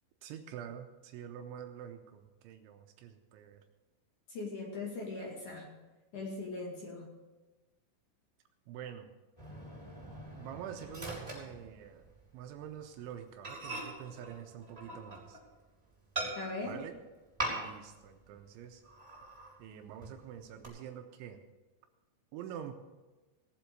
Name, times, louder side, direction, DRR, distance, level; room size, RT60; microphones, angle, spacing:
voice 1, 0.2-3.6 8.7-9.1 10.3-15.4 16.6-17.0 17.5-18.8 19.6-21.4 22.3-22.7, right 9 dB, 80° right, 5 dB, 3.0 m, -46 dB
voice 2, 4.3-5.7 6.1-7.0 16.4-16.7, left 3 dB, 50° left, -2 dB, 2.9 m, -40 dB
Microwave oven, 9.4-12.2 12.6-12.8 13.1-13.2 13.4-15.5 16.1-16.8 17.4-18.0 18.2-18.3 18.8-19.6 20.0-20.7, right 2 dB, 5° right, 4.3 m, -41 dB
18.0 x 7.6 x 6.7 m, 1.2 s
omnidirectional pair, 5.8 m